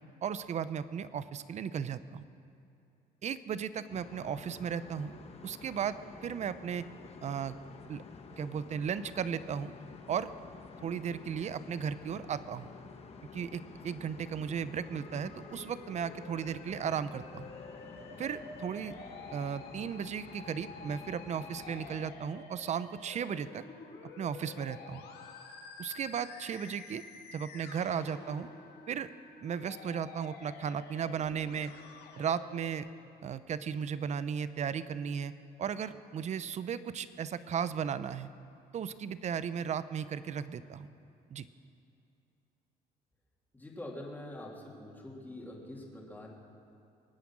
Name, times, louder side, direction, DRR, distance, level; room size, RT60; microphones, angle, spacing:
voice 1, 0.2-2.3 3.2-5.1 5.4-6.9 7.2-7.6 7.9-8.0 8.4-9.7 10.1-10.3 10.8-12.7 13.3-17.5 18.2-19.0 19.3-23.6 24.2-25.1 25.8-27.0 27.3-28.5 28.9-29.1 29.4-31.7 32.2-32.9 33.2-35.3 35.6-38.3 38.7-40.9 41.3-41.5, right 7 dB, 45° right, 14 dB, 0.7 m, -35 dB
sound 1, 3.9-22.1, left 5 dB, 40° left, 1.2 m, -50 dB
Musical instrument, 14.8-32.8, left 4 dB, 70° left, 2.1 m, -50 dB
voice 2, 43.5-46.3, left 1 dB, 10° left, -2 dB, 3.2 m, -45 dB
23.0 x 9.2 x 6.2 m, 2.7 s
cardioid pair, 110°, 17 cm